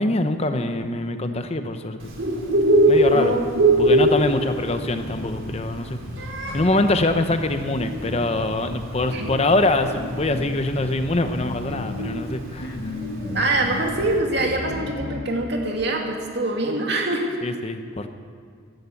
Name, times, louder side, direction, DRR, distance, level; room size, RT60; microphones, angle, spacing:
voice 1, 0.0-2.1 2.9-3.4 3.8-6.0 6.5-12.7 17.4-18.1, left 2 dB, 30° left, 8 dB, 0.8 m, -24 dB
Bird, 2.0-14.1, right 1 dB, 80° right, 3.4 m, -23 dB
voice 2, 3.1-3.6 9.1-9.3 13.3-17.4, right 2 dB, 60° right, 1 dB, 2.5 m, -24 dB
sound 1, 5.0-15.9, left 1 dB, 55° left, 1.6 m, -37 dB
14.5 x 11.5 x 8.4 m, 2.1 s
head